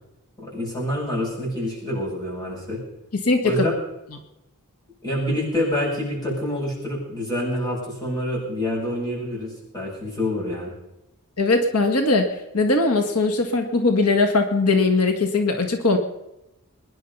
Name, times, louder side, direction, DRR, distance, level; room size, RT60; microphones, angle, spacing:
voice 1, 0.4-2.8 3.4-3.7 5.0-10.7, left 1 dB, 15° left, -5 dB, 7.9 m, -27 dB
voice 2, 3.1-3.7 11.4-16.0, left 3 dB, 90° left, 6 dB, 1.9 m, -20 dB
22.0 x 11.0 x 5.6 m, 0.92 s
head